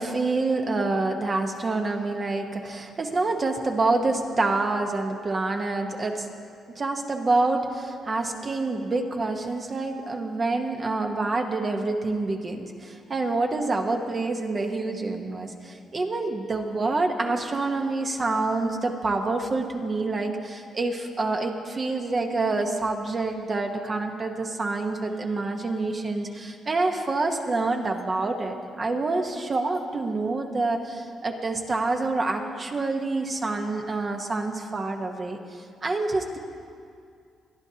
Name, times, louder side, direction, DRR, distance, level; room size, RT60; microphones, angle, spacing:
voice 1, 0.0-6.3 6.8-35.4 35.8-36.4, right 3 dB, 35° right, 3 dB, 1.1 m, -27 dB
21.0 x 11.0 x 2.9 m, 2.3 s
cardioid pair, 90°, 0 cm